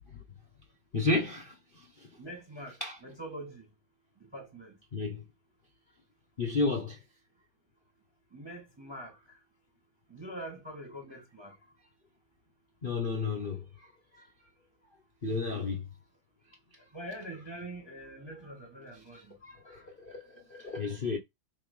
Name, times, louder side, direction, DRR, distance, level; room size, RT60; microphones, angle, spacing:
voice 1, 0.9-2.1 2.8-3.0 4.9-5.2 6.4-7.0 12.8-14.2 15.2-15.8 19.1-21.2, left 3 dB, 30° left, 1.2 m, -33 dB
voice 2, 2.2-2.8 3.0-3.6 4.3-4.7 8.3-9.1 10.1-11.5 15.3-15.7 16.9-19.3, right 1 dB, 15° right, 1.5 m, -44 dB
7.4 x 2.9 x 5.5 m
omnidirectional pair, 2.3 m